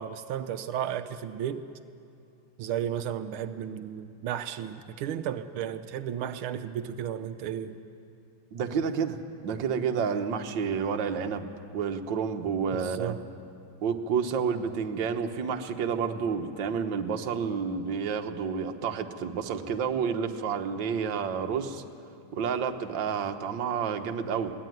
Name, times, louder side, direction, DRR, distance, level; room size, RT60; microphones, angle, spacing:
voice 1, 0.0-1.6 2.6-7.8 12.7-13.2, right 9 dB, 90° right, 9 dB, 1.6 m, -33 dB
voice 2, 8.5-9.2 9.4-11.5 11.7-13.1 13.8-21.8 22.3-24.5, right 6 dB, 65° right, 6 dB, 1.7 m, -30 dB
22.5 x 17.5 x 9.3 m, 2.5 s
omnidirectional pair, 2.3 m